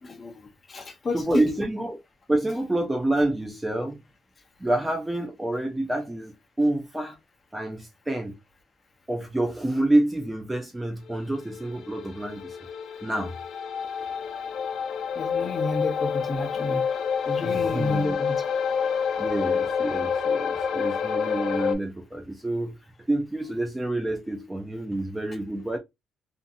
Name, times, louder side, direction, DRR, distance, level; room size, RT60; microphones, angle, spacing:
voice 1, 0.0-1.4 15.2-16.9 17.3-18.4, left 3 dB, 30° left, 0.6 m, -30 dB
voice 2, 1.1-2.0 2.3-4.0 4.6-7.2 7.5-8.4 9.1-12.6 13.0-13.3 17.4-18.2 19.2-22.8 23.1-25.8, right 1 dB, 10° right, 0.4 m, -28 dB
sound 1, 11.4-21.7, left 6 dB, 70° left, 0.5 m, -28 dB
2.7 x 2.4 x 2.5 m
cardioid pair, 145°, 0 cm